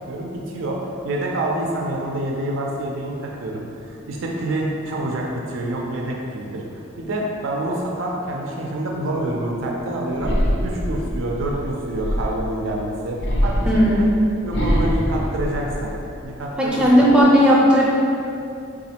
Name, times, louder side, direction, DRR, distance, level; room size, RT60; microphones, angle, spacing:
voice 1, 0.1-14.1 14.4-16.0 16.2-17.3, right 1 dB, 80° right, -1 dB, 0.4 m, -27 dB
sound 1, 10.2-12.6 13.2-16.3 16.7-17.2, equal, 60° left, 0.5 m, -24 dB
voice 2, 13.7-14.0 16.6-17.8, equal, 5° right, -5 dB, 0.4 m, -15 dB
4.0 x 2.4 x 2.8 m, 2.6 s
head